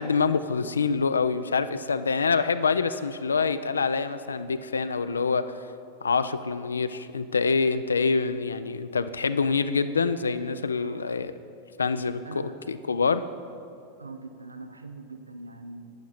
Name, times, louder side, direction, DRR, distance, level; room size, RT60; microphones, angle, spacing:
voice 1, 0.0-5.6 6.0-11.3 11.8-13.2, left 5 dB, 75° left, 12 dB, 0.3 m, -26 dB
voice 2, 12.2-12.6 14.0-15.9, right 3 dB, 80° right, 8 dB, 0.5 m, -42 dB
11.5 x 9.1 x 4.1 m, 2.5 s
figure-of-eight pair, 90°, 0 cm